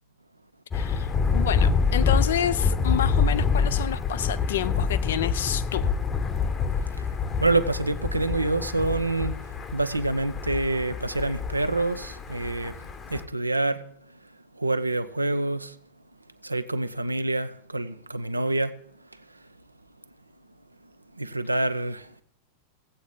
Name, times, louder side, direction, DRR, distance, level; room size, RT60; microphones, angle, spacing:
voice 1, 0.7-5.9, left 9 dB, 60° left, 0.5 m, -29 dB
Thunder, 0.7-13.2, left 5 dB, 25° left, 0.9 m, -26 dB
voice 2, 7.4-9.3 9.7-12.8 13.1-13.8 14.5-15.8 16.4-18.7 21.1-22.2, right 2 dB, 85° right, 0.5 m, -27 dB
16.5 x 8.0 x 3.8 m
figure-of-eight pair, 90°, 0 cm